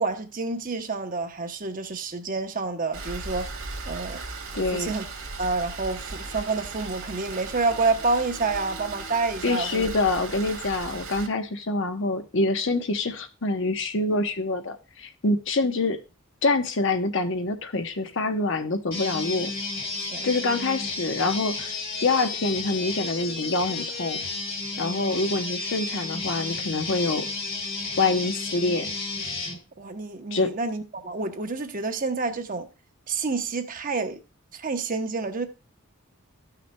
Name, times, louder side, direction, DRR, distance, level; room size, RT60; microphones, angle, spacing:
voice 1, 0.0-3.5 3.9-4.2 4.7-5.0 5.4-9.9 20.0-20.3 29.8-32.7 33.1-34.2 34.5-35.5, right 3 dB, 40° right, 0.9 m, -28 dB
Rain, 2.9-11.3, right 3 dB, 70° right, 2.0 m, -37 dB
voice 2, 4.5-4.9 9.4-16.0 16.4-19.5 20.2-21.7 22.0-24.2 24.8-27.3 28.0-28.9 30.3-30.5, left 3 dB, 60° left, 0.9 m, -26 dB
sound 1, 18.9-29.6, left 3 dB, 40° left, 2.2 m, -32 dB
14.0 x 5.9 x 2.2 m
head